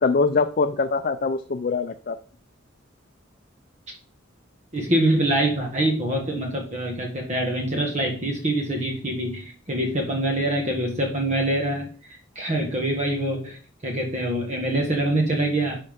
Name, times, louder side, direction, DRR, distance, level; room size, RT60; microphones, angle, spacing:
voice 1, 0.0-2.2, left 4 dB, 45° left, 8 dB, 0.5 m, -23 dB
voice 2, 4.7-15.8, right 1 dB, 35° right, 1 dB, 1.4 m, -25 dB
10.5 x 5.6 x 3.6 m, 0.42 s
head